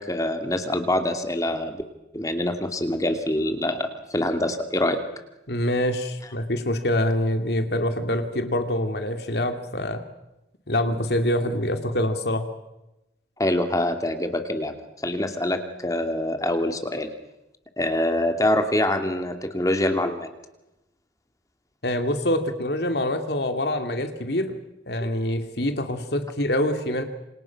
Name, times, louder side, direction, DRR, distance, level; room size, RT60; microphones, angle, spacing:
voice 1, 0.0-1.8 2.1-5.0 13.4-14.7 15.0-17.1 17.8-20.3 25.0-25.1, left 1 dB, 20° left, 7 dB, 2.5 m, -25 dB
voice 2, 5.5-10.0 10.7-12.5 21.8-24.5 24.9-27.0, left 1 dB, 70° left, 7 dB, 2.6 m, -25 dB
28.5 x 27.0 x 6.0 m, 0.93 s
head